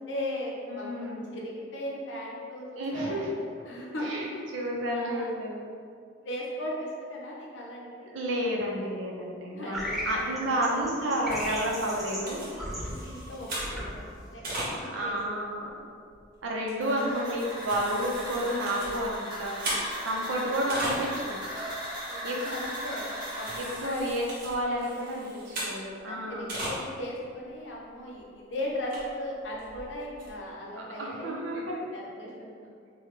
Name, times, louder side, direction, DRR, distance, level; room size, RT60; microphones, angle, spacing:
voice 1, 0.0-3.3 3.6-4.4 4.9-5.3 6.2-8.1 9.5-10.8 11.1-11.3 12.8-14.0 14.3-15.9 18.5-19.1 20.2-20.5 22.1-24.1 24.4-24.9 25.1-25.3 26.0-31.6 31.9-32.7, left 1 dB, 65° left, -3 dB, 0.6 m, -38 dB
voice 2, 0.7-1.4 2.8-3.3 4.0-4.3 4.5-5.7 8.1-12.4 14.5-15.7 16.4-21.4 22.2-22.6 23.6-26.6 30.8-31.8, right 1 dB, 80° right, -1 dB, 0.5 m, -31 dB
sound 1, 9.7-15.1, equal, ahead, 1.2 m, -37 dB
sound 2, 11.3-15.1 15.7-15.8 16.1-16.3 16.6-16.7 17.1-21.3 21.6-21.7 22.0-22.2 22.5-22.8 23.2-26.0 26.3-26.8 27.2-27.3 27.7-27.8 28.1-28.2 28.7-30.3, right 1 dB, 50° right, 0.9 m, -38 dB
sound 3, 16.8-23.9, equal, 25° right, 0.9 m, -37 dB
3.2 x 2.2 x 3.1 m, 2.2 s
head